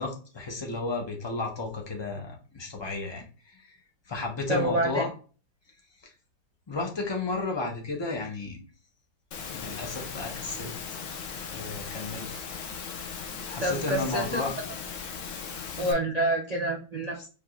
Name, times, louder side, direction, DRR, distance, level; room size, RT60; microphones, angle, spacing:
voice 1, 0.0-3.8 4.1-5.1 6.0-6.1 6.7-8.6 9.5-11.0 11.5-12.4 13.5-14.5, left 3 dB, 30° left, 1 dB, 0.5 m, -33 dB
voice 2, 4.5-5.0 13.6-14.4 15.8-17.3, right 1 dB, 85° right, -2 dB, 0.3 m, -27 dB
Engine / Mechanisms, 9.3-15.9, left 6 dB, 65° left, 0.8 m, -38 dB
4.8 x 3.5 x 2.4 m, 0.36 s
omnidirectional pair, 2.0 m